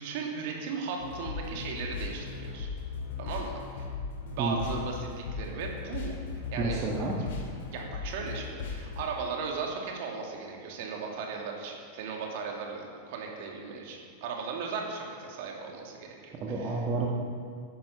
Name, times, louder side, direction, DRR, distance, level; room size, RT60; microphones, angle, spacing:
voice 1, 0.0-2.7 3.2-3.9 4.2-6.8 7.2-7.3 7.7-16.8, right 5 dB, 50° right, 0 dB, 2.5 m, -37 dB
sound 1, 1.0-9.1, left 5 dB, 55° left, 2.7 m, -38 dB
voice 2, 6.6-7.1 16.4-17.1, right 3 dB, 30° right, -3 dB, 1.8 m, -30 dB
14.5 x 10.5 x 5.8 m, 2.1 s
figure-of-eight pair, 90°, 0 cm